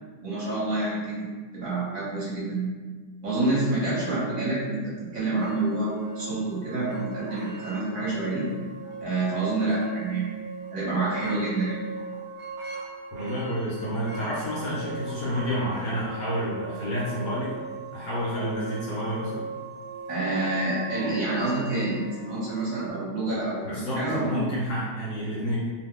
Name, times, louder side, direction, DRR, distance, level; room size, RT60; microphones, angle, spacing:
voice 1, 0.2-1.2 1.5-2.7 3.2-8.4 9.0-10.3 10.7-11.8 20.1-24.4, right 2 dB, 55° right, -9 dB, 1.3 m, -28 dB
sound 1, 5.4-22.9, right 4 dB, 85° right, 0.5 m, -39 dB
voice 2, 13.1-17.6 17.9-19.5 23.6-25.6, equal, 60° left, -7 dB, 1.2 m, -29 dB
3.0 x 2.3 x 3.6 m, 1.4 s
omnidirectional pair, 1.9 m